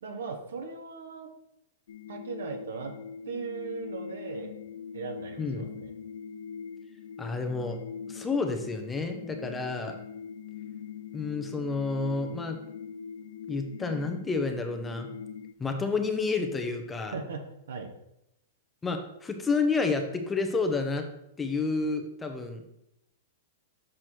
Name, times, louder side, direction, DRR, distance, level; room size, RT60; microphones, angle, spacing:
voice 1, 0.0-1.3 2.1-2.9 3.2-4.5 4.9-5.9 17.1-17.9, right 5 dB, 80° right, 4 dB, 1.3 m, -38 dB
sound 1, 1.9-15.5, left 6 dB, 80° left, 0.3 m, -42 dB
voice 2, 5.4-5.7 7.2-7.8 8.1-9.9 11.1-12.6 13.5-15.1 15.6-17.1 18.8-21.0 21.4-22.7, left 4 dB, 10° left, 5 dB, 0.8 m, -30 dB
6.3 x 4.7 x 4.5 m, 0.83 s
hypercardioid pair, 135°, 0 cm